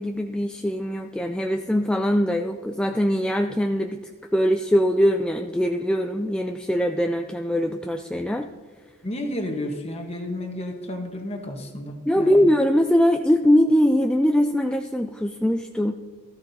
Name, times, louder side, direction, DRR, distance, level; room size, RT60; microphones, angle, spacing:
voice 1, 0.0-8.5 12.1-15.9, equal, 5° left, 5 dB, 0.3 m, -22 dB
voice 2, 9.0-12.5, left 1 dB, 30° left, 3 dB, 1.3 m, -32 dB
16.0 x 13.5 x 2.8 m, 1.4 s
head